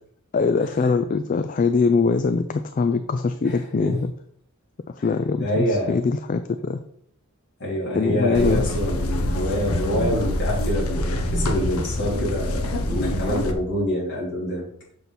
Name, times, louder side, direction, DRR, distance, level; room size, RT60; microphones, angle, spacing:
voice 1, 0.3-4.1 5.0-6.8 7.9-8.7, left 4 dB, 35° left, 9 dB, 0.3 m, -22 dB
voice 2, 3.4-3.9 5.0-5.1 5.4-5.9 7.6-14.6, equal, 50° left, -6 dB, 3.5 m, -26 dB
sound 1, 8.3-13.5, left 1 dB, 70° left, 0.9 m, -25 dB
6.8 x 6.0 x 4.1 m, 0.68 s
head